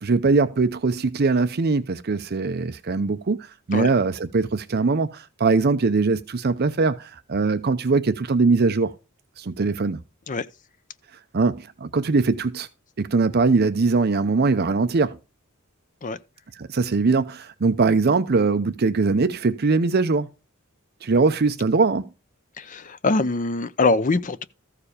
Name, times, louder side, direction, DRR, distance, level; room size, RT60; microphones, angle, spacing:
voice 1, 0.0-3.4 3.7-8.9 9.4-10.0 11.3-12.7 13.0-15.2 16.6-20.3 21.0-22.0, right 4 dB, 50° right, 0.6 m, -21 dB
voice 2, 22.6-24.4, left 3 dB, 40° left, 0.6 m, -23 dB
14.0 x 4.9 x 4.9 m
head